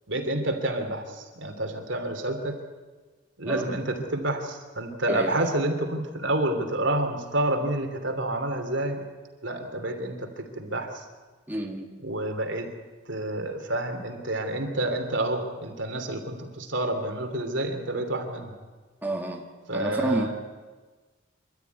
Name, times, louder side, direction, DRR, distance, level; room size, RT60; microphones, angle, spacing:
voice 1, 0.1-2.6 3.4-9.0 9.4-11.0 12.0-12.7 13.1-18.5 19.7-20.3, right 1 dB, 65° right, 5 dB, 3.0 m, -29 dB
voice 2, 11.5-11.9 19.0-20.3, right 1 dB, 10° right, 0 dB, 1.9 m, -30 dB
26.5 x 13.0 x 9.5 m, 1.3 s
head